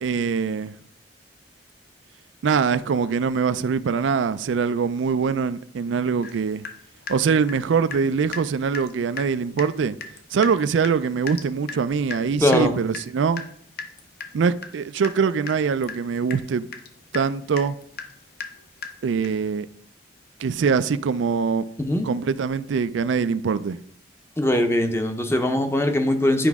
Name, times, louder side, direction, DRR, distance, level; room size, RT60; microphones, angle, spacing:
voice 1, 0.0-0.7 2.4-6.6 7.1-10.0 10.3-13.4 14.3-16.7 17.1-17.8 19.0-19.7 20.4-21.6 22.0-23.8, right 5 dB, 90° right, 0.4 m, -23 dB
Water tap faucet / Drip, 6.2-6.4 6.6-8.1 8.3-8.5 8.7-8.9 9.2-9.3 9.6-9.7 10.0-19.5, left 5 dB, 55° left, 0.8 m, -37 dB
voice 2, 12.4-12.7 21.8-22.1 24.4-26.5, left 1 dB, 15° left, 0.7 m, -21 dB
10.0 x 4.9 x 3.6 m
head